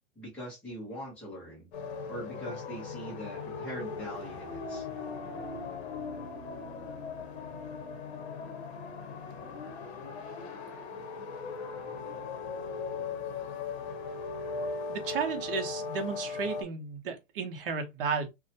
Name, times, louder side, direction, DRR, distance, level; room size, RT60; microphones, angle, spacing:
voice 1, 0.2-1.7 2.1-4.9, equal, 5° left, 0.5 m, -42 dB
sound 1, 1.7-16.6, left 4 dB, 55° left, 0.8 m, -38 dB
voice 2, 14.9-18.3, right 5 dB, 45° right, 0.8 m, -33 dB
2.6 x 2.1 x 2.6 m
hypercardioid pair, 165°, 38 cm